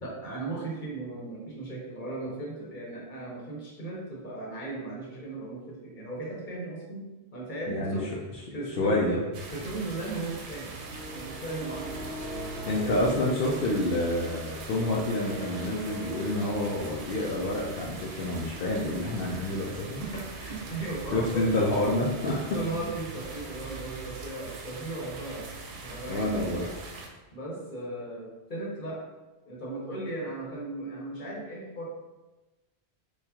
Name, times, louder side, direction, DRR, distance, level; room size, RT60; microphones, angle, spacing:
voice 1, 0.0-7.1 7.3-8.1 8.5-9.2 9.5-10.8 11.1-12.1 12.8-13.1 20.0-21.4 22.5-25.5 25.8-26.7 27.3-29.0 29.4-31.9, right 2 dB, 50° left, -4 dB, 1.1 m, -36 dB
voice 2, 7.7-8.0 8.8-9.2 12.6-20.0 21.1-22.4 26.1-26.6, left 1 dB, 65° left, -3 dB, 0.7 m, -28 dB
sound 1, 9.3-27.1, right 4 dB, 90° right, 0.9 m, -42 dB
sound 2, 10.8-23.8, right 1 dB, 80° left, 1.0 m, -43 dB
4.5 x 2.4 x 2.7 m, 1.1 s
omnidirectional pair, 1.1 m